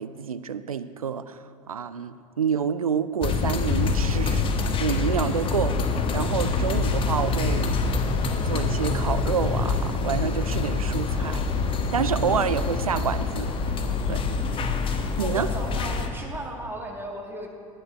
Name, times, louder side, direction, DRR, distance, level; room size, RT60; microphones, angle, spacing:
voice 1, 0.0-5.8 6.1-7.8 8.5-11.4 11.9-13.5 14.1-14.2 15.2-15.5, right 7 dB, 85° right, 13 dB, 0.4 m, -28 dB
sound 1, 3.2-16.1, left 4 dB, 30° left, 0.9 m, -25 dB
voice 2, 15.2-17.5, right 1 dB, 10° right, 0 dB, 1.7 m, -35 dB
10.5 x 9.0 x 4.3 m, 2.3 s
figure-of-eight pair, 75°, 18 cm